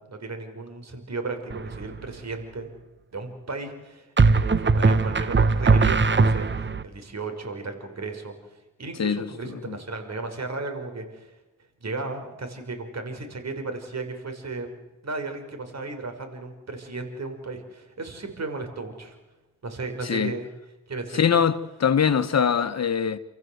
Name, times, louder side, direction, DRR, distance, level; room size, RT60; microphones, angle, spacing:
voice 1, 0.0-2.7 3.1-11.4 11.8-19.2 19.6-20.5 20.9-21.2, right 3 dB, 55° right, 5.8 m, -35 dB
sound 1, 1.5-2.0 4.2-6.8, right 4 dB, 35° right, 1.1 m, -20 dB
voice 2, 20.0-20.3 21.1-23.2, left 7 dB, 55° left, 1.3 m, -22 dB
29.0 x 15.0 x 8.1 m
cardioid pair, 65°, 31 cm